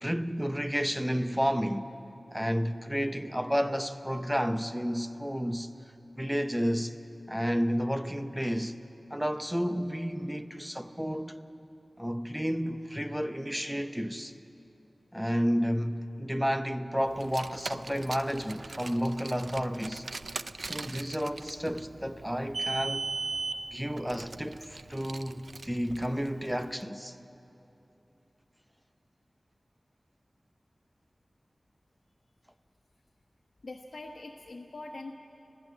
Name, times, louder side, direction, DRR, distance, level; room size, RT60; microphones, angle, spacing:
voice 1, 0.0-1.9 2.3-5.7 6.1-6.9 7.3-8.8 9.1-11.4 12.0-14.3 15.1-20.0 20.6-23.1 23.7-27.2, equal, 5° right, 0.7 m, -31 dB
Car, 17.1-26.6, right 3 dB, 70° right, 0.4 m, -39 dB
voice 2, 33.6-35.1, left 2 dB, 75° left, 1.2 m, -43 dB
19.5 x 16.0 x 8.3 m
wide cardioid pair, 75°, 0 cm